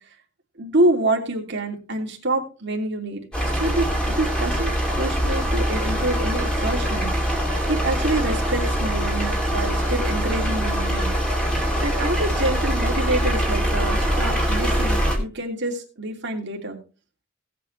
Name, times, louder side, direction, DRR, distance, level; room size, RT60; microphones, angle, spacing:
voice 1, 0.6-3.3 3.6-7.1 7.7-11.1 11.8-16.8, right 2 dB, 60° right, 2 dB, 2.9 m, -26 dB
sound 1, 3.3-15.2, equal, 5° left, 3.0 m, -23 dB
18.0 x 8.2 x 3.3 m, 0.34 s
head